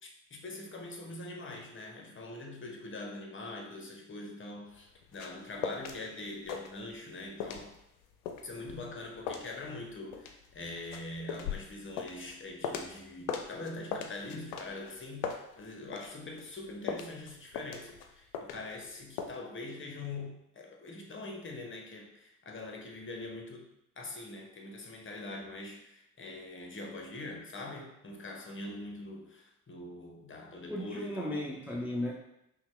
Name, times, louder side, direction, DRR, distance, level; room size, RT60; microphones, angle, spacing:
voice 1, 0.0-7.7 8.4-31.4, left 2 dB, 30° left, 1 dB, 0.9 m, -43 dB
sound 1, 4.7-6.0 6.3-7.1 7.4-13.0 13.3-16.1 16.4-18.9 19.2-19.4, left 7 dB, 70° left, 0.6 m, -39 dB
voice 2, 30.7-32.1, left 1 dB, 5° right, -2 dB, 0.6 m, -35 dB
5.6 x 2.3 x 3.2 m, 0.82 s
figure-of-eight pair, 45°, 42 cm